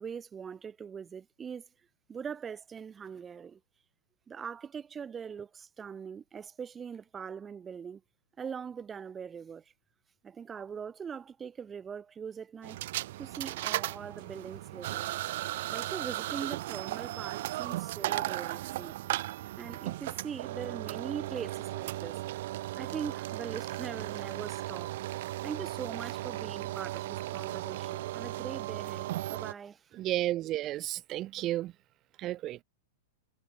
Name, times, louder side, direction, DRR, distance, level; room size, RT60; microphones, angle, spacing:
voice 1, 0.0-1.7 2.1-3.6 4.3-8.0 8.4-9.6 10.2-12.8 13.2-15.1 15.7-19.0 19.6-25.1 25.4-29.8, right 7 dB, 20° right, 2.1 m, -42 dB
sound 1, 12.6-29.5, right 16 dB, 65° right, 2.7 m, -36 dB
voice 2, 29.9-31.7 32.2-32.6, right 14 dB, 35° right, 0.6 m, -32 dB
hypercardioid pair, 115°, 0 cm